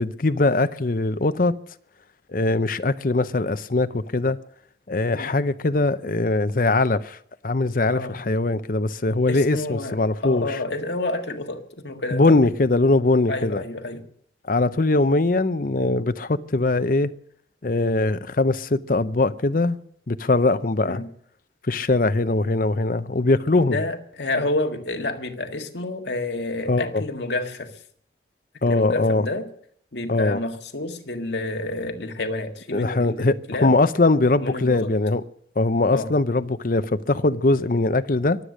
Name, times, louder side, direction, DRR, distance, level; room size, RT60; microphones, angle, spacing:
voice 1, 0.0-1.6 2.3-4.4 4.9-7.2 7.4-10.6 12.1-13.6 14.5-17.1 17.6-19.8 20.1-21.0 21.7-23.8 26.7-27.0 28.6-29.2 30.1-30.4 32.7-35.2 35.6-38.4, left 2 dB, 50° left, 0.7 m, -21 dB
voice 2, 7.9-8.2 9.3-12.4 13.3-14.1 20.8-21.1 23.6-27.7 28.7-29.5 29.9-33.8 34.4-34.9 35.9-36.1, left 2 dB, 75° left, 1.7 m, -29 dB
23.5 x 8.2 x 6.3 m
head